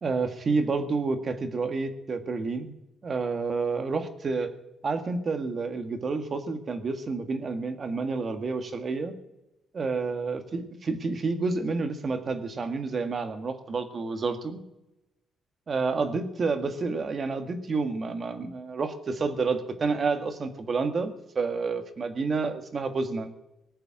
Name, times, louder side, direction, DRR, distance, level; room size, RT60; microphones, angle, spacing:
voice 1, 0.0-2.8 3.0-4.5 4.8-9.1 9.7-14.6 15.7-23.3, right 4 dB, 35° right, 8 dB, 1.7 m, -29 dB
19.0 x 6.8 x 9.9 m, 0.95 s
cardioid pair, 125°, 0 cm